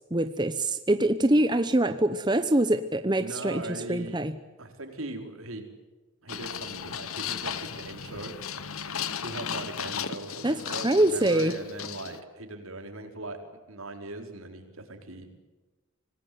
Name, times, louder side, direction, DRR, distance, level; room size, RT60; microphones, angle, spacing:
voice 1, 0.0-3.6 3.9-4.3 10.4-11.5, right 1 dB, 20° right, 9 dB, 0.9 m, -24 dB
voice 2, 3.2-4.3 4.6-5.7 6.2-8.4 8.8-13.4 13.7-15.5, right 2 dB, 80° right, 5 dB, 4.5 m, -40 dB
sound 1, 6.3-12.2, left 7 dB, 85° left, 1.3 m, -36 dB
26.0 x 19.5 x 9.4 m, 1.2 s
head